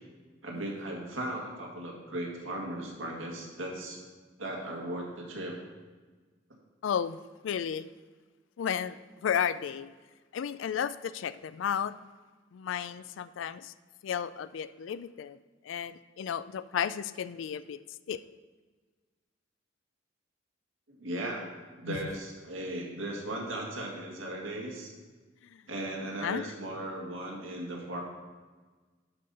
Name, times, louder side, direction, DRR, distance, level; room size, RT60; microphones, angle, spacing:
voice 1, 0.4-4.0 4.4-5.5 20.9-24.9 25.7-28.0, right 1 dB, 85° right, -1 dB, 1.9 m, -37 dB
voice 2, 6.8-7.9 8.6-9.9 10.3-11.9 12.5-13.7 14.0-15.4 15.6-17.8 18.1-18.2 21.9-22.0 25.4-25.6 26.2-26.5, left 8 dB, 70° left, 15 dB, 0.3 m, -33 dB
12.0 x 5.4 x 4.2 m, 1.4 s
head